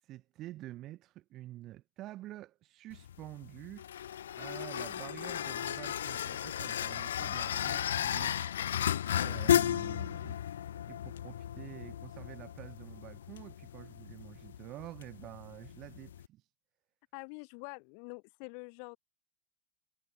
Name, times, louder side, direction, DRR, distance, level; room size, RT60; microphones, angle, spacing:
voice 1, 0.0-4.0 4.4-8.4 9.2-10.4 10.9-16.5, right 15 dB, 35° right, 3.3 m, -48 dB
sound 1, 2.9-16.3, left 10 dB, 60° left, 0.6 m, -34 dB
voice 2, 17.1-19.0, left 40 dB or more, 45° left, 3.5 m, -46 dB
figure-of-eight pair, 90°, 0 cm